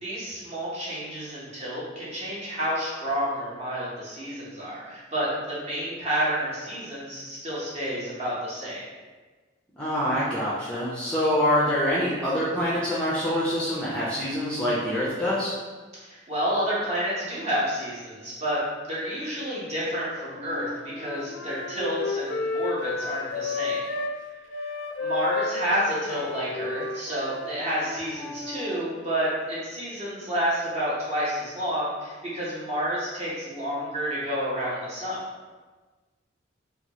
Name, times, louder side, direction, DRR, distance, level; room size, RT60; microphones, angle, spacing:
voice 1, 0.0-8.8 16.0-18.6 18.9-23.8 24.6-24.7 25.0-35.2, equal, 35° right, -8 dB, 0.9 m, -30 dB
voice 2, 9.8-15.5, equal, 5° left, -9 dB, 0.4 m, -25 dB
Wind instrument woodwind instrument, 20.3-24.2 24.5-28.8, left 3 dB, 80° left, 0.3 m, -32 dB
2.9 x 2.3 x 2.9 m, 1.3 s
head